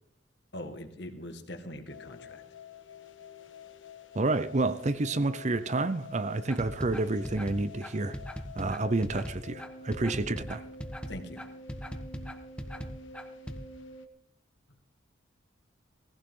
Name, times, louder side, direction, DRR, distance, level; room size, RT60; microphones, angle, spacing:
voice 1, 0.5-2.4 11.1-11.5 14.7-14.8, left 1 dB, 60° left, 1.9 m, -42 dB
sound 1, 1.9-14.1, left 3 dB, 75° left, 1.7 m, -48 dB
voice 2, 4.1-8.2 8.6-10.6, right 2 dB, 35° right, 0.6 m, -29 dB
sound 2, 6.5-13.6, equal, 5° left, 1.2 m, -39 dB
18.0 x 15.5 x 3.8 m
head